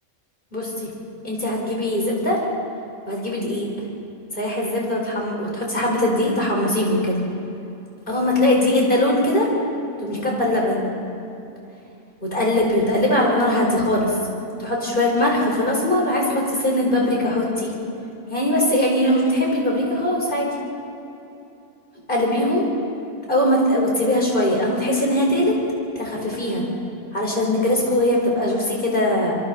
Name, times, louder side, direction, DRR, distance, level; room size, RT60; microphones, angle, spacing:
voice 1, 0.5-0.9 1.2-2.4 3.1-3.7 4.3-7.2 8.1-9.5 10.0-10.9 12.2-14.1 14.6-17.7 18.3-20.5 22.1-22.6 23.3-25.6 25.9-26.6 27.1-29.3, left 1 dB, 40° left, -2 dB, 5.0 m, -21 dB
27.0 x 23.0 x 4.2 m, 2.8 s
omnidirectional pair, 1.3 m